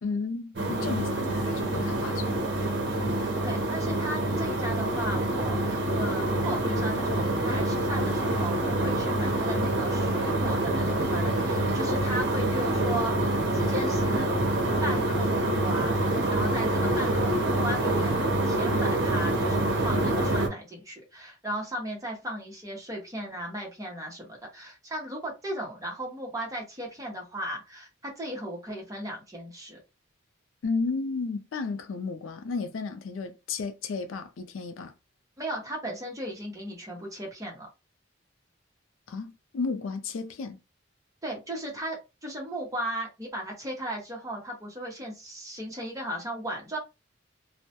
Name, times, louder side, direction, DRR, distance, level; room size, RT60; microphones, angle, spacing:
voice 1, 0.0-2.4 30.6-34.9 39.1-40.6, left 4 dB, 80° left, 0.4 m, -33 dB
sound 1, 0.6-20.5, right 1 dB, 60° right, 0.7 m, -26 dB
voice 2, 3.1-14.3 14.8-29.8 35.4-37.7 41.2-46.8, right 1 dB, 15° right, 0.7 m, -36 dB
2.2 x 2.0 x 2.7 m
head